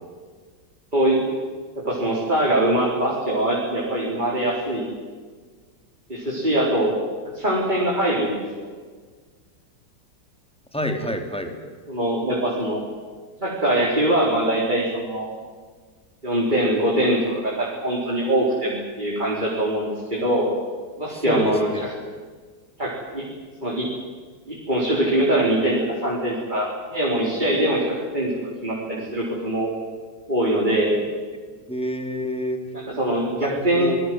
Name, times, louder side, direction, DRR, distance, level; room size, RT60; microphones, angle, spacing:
voice 1, 0.9-1.2 1.8-4.9 6.1-7.0 7.3-8.7 11.9-12.8 13.4-15.3 16.2-20.5 21.0-21.9 22.8-23.2 23.6-23.8 24.5-27.9 28.1-28.3 28.6-29.7 30.3-31.0 32.7-34.0, right 1 dB, 25° right, -5 dB, 4.5 m, -22 dB
voice 2, 10.7-11.5 21.1-21.8 31.7-32.6 33.4-34.0, equal, 5° left, 4 dB, 2.7 m, -28 dB
26.0 x 21.0 x 7.9 m, 1.5 s
omnidirectional pair, 1.9 m